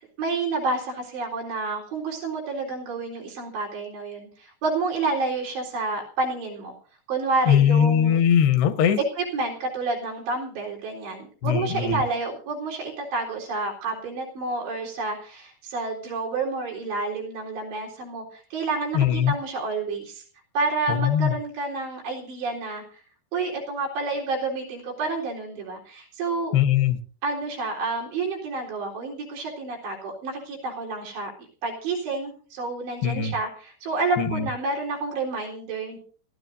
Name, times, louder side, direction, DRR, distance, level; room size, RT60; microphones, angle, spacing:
voice 1, 0.2-6.7 7.1-8.2 9.2-20.2 20.5-22.8 23.3-26.6 27.2-31.3 31.6-36.0, right 3 dB, 85° right, -2 dB, 6.2 m, -29 dB
voice 2, 7.5-9.0 11.4-12.0 18.9-19.3 20.9-21.3 26.5-27.0 33.0-33.3 34.2-34.5, left 9 dB, 75° left, 9 dB, 3.1 m, -20 dB
28.0 x 12.5 x 2.7 m, 0.41 s
omnidirectional pair, 4.8 m